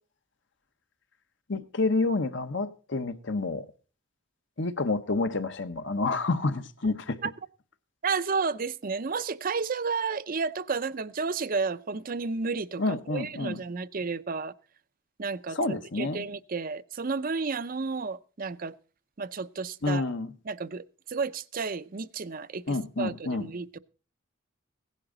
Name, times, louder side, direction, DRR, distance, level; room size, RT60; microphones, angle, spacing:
voice 1, 1.5-3.7 4.6-7.2 12.8-13.6 15.5-16.3 19.8-20.3 22.7-23.5, left 3 dB, 60° left, 1.0 m, -29 dB
voice 2, 8.0-14.5 15.2-18.7 19.2-20.1 20.5-23.8, right 4 dB, 45° right, 0.5 m, -32 dB
16.5 x 11.0 x 3.9 m
head